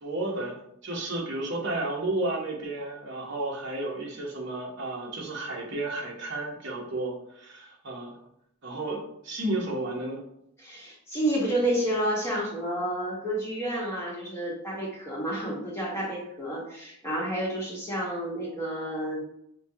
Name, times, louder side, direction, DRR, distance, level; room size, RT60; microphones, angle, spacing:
voice 1, 0.0-8.2 8.6-10.2, right 2 dB, 55° right, -2 dB, 1.0 m, -32 dB
voice 2, 10.6-19.2, right 1 dB, 10° left, -6 dB, 1.0 m, -30 dB
4.8 x 2.3 x 2.7 m, 0.75 s
head